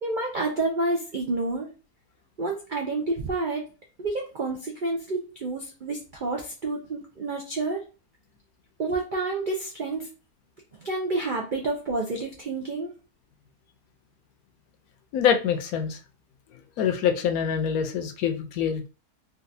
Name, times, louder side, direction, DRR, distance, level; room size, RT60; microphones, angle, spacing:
voice 1, 0.0-1.7 2.4-3.6 4.0-7.8 8.8-10.1 10.8-12.9, right 2 dB, 75° right, 0 dB, 0.4 m, -29 dB
voice 2, 15.1-16.0 16.8-18.9, left 8 dB, 70° left, 6 dB, 1.0 m, -25 dB
3.8 x 2.3 x 2.6 m, 0.34 s
omnidirectional pair, 1.7 m